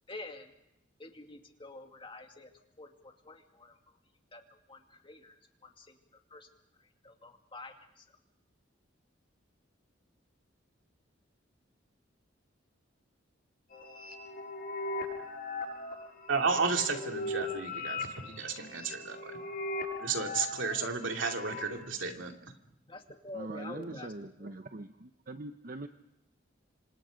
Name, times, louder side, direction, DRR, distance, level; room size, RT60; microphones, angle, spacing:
voice 1, 0.1-0.5 1.0-2.5 2.8-4.0 4.3-6.0 6.3-6.5 6.8-8.1 22.9-24.5, left 2 dB, 25° left, 4 dB, 2.3 m, -48 dB
sound 1, 13.7-21.8, left 2 dB, 50° left, 7.6 m, -39 dB
voice 2, 16.3-19.4 20.0-22.3, right 4 dB, 85° right, 3 dB, 2.6 m, -33 dB
voice 3, 23.3-25.9, right 2 dB, 45° right, 8 dB, 0.8 m, -42 dB
27.5 x 25.5 x 5.1 m, 0.83 s
head